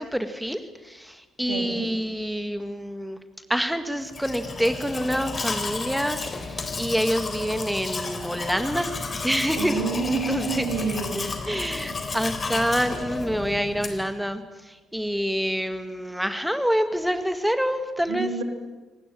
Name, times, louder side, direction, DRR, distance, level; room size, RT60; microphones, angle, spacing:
voice 1, 0.0-3.2 3.5-8.9 9.2-10.8 11.1-18.3, equal, 5° right, 10 dB, 2.0 m, -27 dB
voice 2, 1.5-1.9 9.6-11.7 18.1-18.4, right 5 dB, 70° right, 5 dB, 3.0 m, -30 dB
Domestic sounds home sounds, 4.0-14.1, left 3 dB, 35° left, 3.8 m, -32 dB
26.5 x 19.0 x 7.7 m, 1.2 s
figure-of-eight pair, 45°, 0 cm